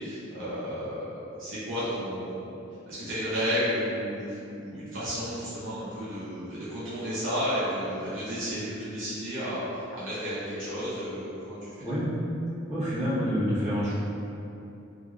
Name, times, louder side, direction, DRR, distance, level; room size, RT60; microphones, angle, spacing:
voice 1, 0.0-2.6 2.9-11.7, equal, 65° right, -12 dB, 0.8 m, -32 dB
voice 2, 12.7-14.0, equal, 35° right, -12 dB, 1.1 m, -27 dB
3.0 x 2.5 x 2.5 m, 2.7 s
head